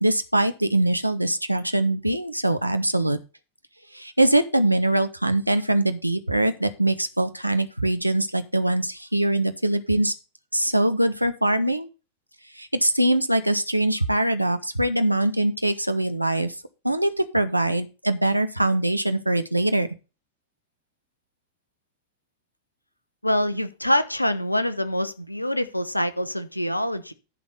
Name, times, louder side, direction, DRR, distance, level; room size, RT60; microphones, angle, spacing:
voice 1, 0.0-3.2 3.9-10.1 10.5-11.9 12.6-16.5 16.8-19.9, right 1 dB, 90° right, 0.7 m, -23 dB
voice 2, 23.2-27.1, left 1 dB, 85° left, 0.7 m, -25 dB
11.0 x 4.1 x 6.7 m
figure-of-eight pair, 90°, 0 cm